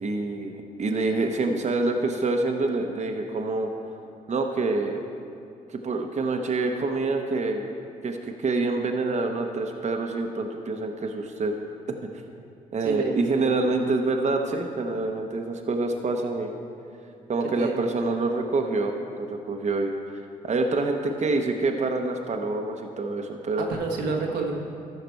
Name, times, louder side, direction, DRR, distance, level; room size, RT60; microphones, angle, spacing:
voice 1, 0.0-3.7 4.3-5.0 5.7-7.7 8.0-11.5 11.9-12.0 12.7-16.5 17.3-23.7, right 3 dB, 45° right, 3 dB, 0.9 m, -26 dB
voice 2, 12.8-13.5 17.6-17.7 23.6-24.5, right 4 dB, 80° right, 0 dB, 1.2 m, -29 dB
13.5 x 5.8 x 4.6 m, 2.5 s
supercardioid pair, 55°, 17 cm